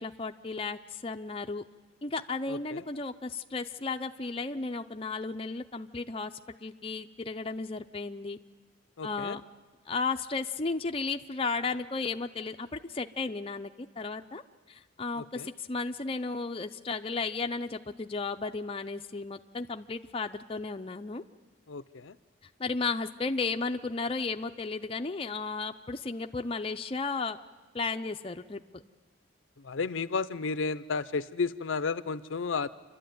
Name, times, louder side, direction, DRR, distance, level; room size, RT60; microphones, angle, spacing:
voice 1, 0.0-1.6 2.0-6.3 6.6-8.4 9.0-9.4 9.9-14.4 14.7-21.2 22.6-27.4 27.7-28.8, left 4 dB, 30° left, 5 dB, 0.6 m, -34 dB
voice 2, 2.5-2.8 9.0-9.4 15.2-15.5 21.7-22.2 29.6-32.7, left 4 dB, 75° left, 14 dB, 0.6 m, -33 dB
28.5 x 12.5 x 9.3 m, 1.4 s
head